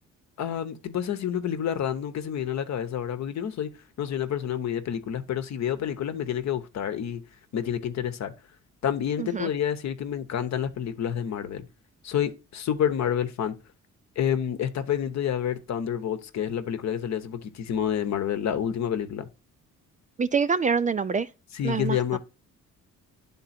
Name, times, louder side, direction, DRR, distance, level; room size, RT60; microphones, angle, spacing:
voice 1, 0.4-3.7 4.0-7.2 7.5-8.3 8.8-11.6 12.0-13.6 14.2-19.3 21.5-22.2, left 9 dB, 60° left, 0.9 m, -28 dB
voice 2, 9.2-9.5 20.2-21.3 21.6-22.2, right 5 dB, 25° right, 0.4 m, -26 dB
9.9 x 3.7 x 4.2 m
cardioid pair, 90°, 30 cm